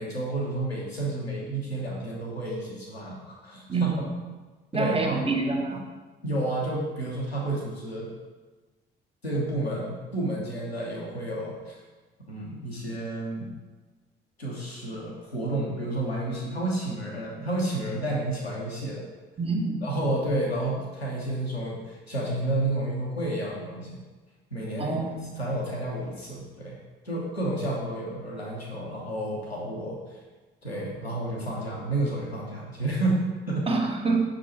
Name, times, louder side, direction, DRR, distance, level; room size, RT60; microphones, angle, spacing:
voice 1, 0.0-3.9 4.7-5.3 5.7-5.8 6.2-8.1 9.2-11.7 12.3-13.5 14.4-19.0 19.8-24.0 24.5-26.8 27.0-30.0 30.6-33.7, right 1 dB, 90° left, -4 dB, 1.0 m, -30 dB
voice 2, 4.7-5.8 19.4-19.8 24.8-25.2 33.7-34.2, right 4 dB, 20° right, 2 dB, 1.0 m, -26 dB
6.0 x 3.8 x 4.4 m, 1.3 s
figure-of-eight pair, 45°, 30 cm